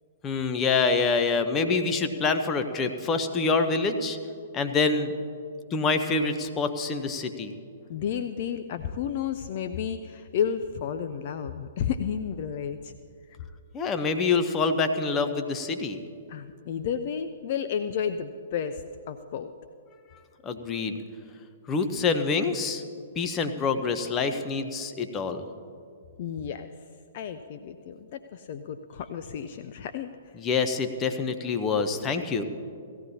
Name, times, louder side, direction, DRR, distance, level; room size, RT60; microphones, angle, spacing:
voice 1, 0.2-4.2 4.5-5.1 5.7-7.5 13.7-16.0 20.4-21.0 21.7-22.8 23.2-25.5 30.4-32.4, left 4 dB, 20° left, 8 dB, 0.9 m, -26 dB
voice 2, 7.9-12.9 16.3-19.5 21.7-22.1 26.2-26.7 27.1-30.4, left 8 dB, 50° left, 9 dB, 0.5 m, -32 dB
18.0 x 15.0 x 2.8 m, 2.4 s
figure-of-eight pair, 120°, 0 cm